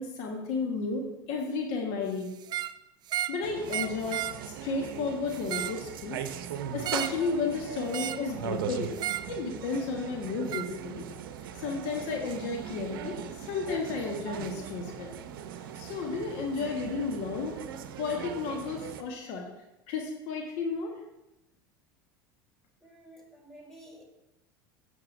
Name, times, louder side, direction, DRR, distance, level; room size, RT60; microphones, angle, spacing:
voice 1, 0.0-2.3 3.3-6.2 6.6-8.9 9.3-11.1 11.6-15.2 15.7-17.6 18.0-19.4 19.9-20.9, left 4 dB, 60° left, 2 dB, 1.4 m, -33 dB
sound 1, 2.4-2.8 3.1-3.4 3.7-4.4 5.3-5.8 6.8-7.2 7.9-8.3 9.0-9.3 10.5-10.7, right 12 dB, 40° right, 0.4 m, -33 dB
sound 2, 3.4-19.0, right 8 dB, 75° right, 0.7 m, -40 dB
voice 2, 22.8-24.0, right 1 dB, 5° left, -3 dB, 3.4 m, -51 dB
11.5 x 7.6 x 2.6 m, 0.94 s
hypercardioid pair, 80°, 11 cm